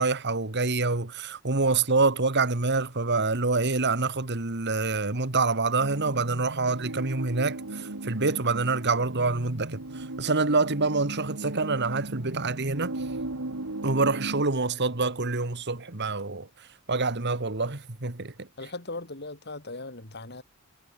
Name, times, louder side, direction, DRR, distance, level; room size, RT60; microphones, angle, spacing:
voice 1, 0.0-12.9 13.8-16.5 16.9-18.5, right 3 dB, 50° right, 1.8 m, -26 dB
sound 1, 5.8-14.4, right 2 dB, 70° right, 1.8 m, -37 dB
voice 2, 18.6-20.4, left 2 dB, 50° left, 3.6 m, -38 dB
head